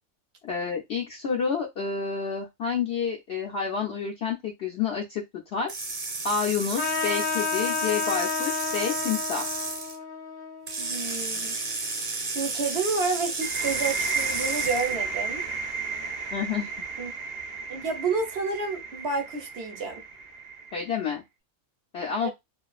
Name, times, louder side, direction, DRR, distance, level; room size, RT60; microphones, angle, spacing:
voice 1, 0.4-5.7 6.2-9.5 16.3-16.7 20.7-21.2 21.9-22.3, left 6 dB, 65° left, 0.7 m, -29 dB
sound 1, 5.7-10.0 10.7-15.0, right 3 dB, 40° right, 1.0 m, -32 dB
Trumpet, 6.8-11.8, left 5 dB, 25° left, 0.6 m, -32 dB
voice 2, 10.8-11.5 12.3-15.4 17.0-17.1 17.7-20.0 22.2-22.3, right 4 dB, 55° right, 0.8 m, -30 dB
sound 2, 13.4-20.9, right 4 dB, 85° right, 0.3 m, -33 dB
2.4 x 2.4 x 2.3 m
omnidirectional pair, 1.5 m